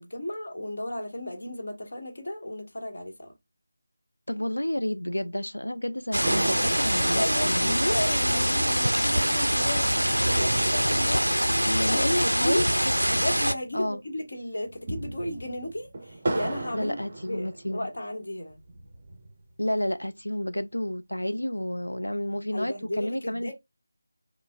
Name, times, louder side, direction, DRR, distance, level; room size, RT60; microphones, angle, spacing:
voice 1, 0.0-3.3 6.8-11.3 11.9-12.6 13.1-17.0 17.3-18.6 22.5-23.5, left 1 dB, 50° left, 1.1 m, -34 dB
voice 2, 4.3-8.0 11.7-12.7 13.7-14.0 16.7-17.9 19.6-23.5, left 1 dB, 75° left, 0.3 m, -30 dB
sound 1, 6.1-13.5, equal, 85° right, 0.3 m, -24 dB
sound 2, 6.2-13.8 14.1-14.2 14.6-18.0 18.5-19.5, right 2 dB, 30° right, 0.5 m, -36 dB
5.2 x 2.0 x 2.3 m
figure-of-eight pair, 165°, 0 cm